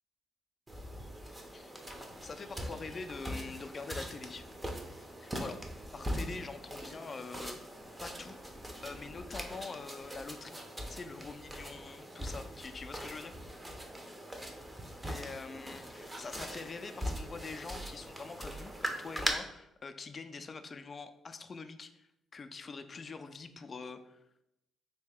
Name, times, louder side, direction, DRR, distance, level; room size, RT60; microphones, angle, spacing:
sound 1, 0.7-19.3, equal, 15° right, 0.5 m, -41 dB
voice 1, 2.2-4.4 5.2-7.6 8.0-13.4 15.1-24.2, left 4 dB, 40° left, 8 dB, 0.3 m, -45 dB
3.2 x 2.8 x 3.4 m, 0.84 s
cardioid pair, 90°, 0 cm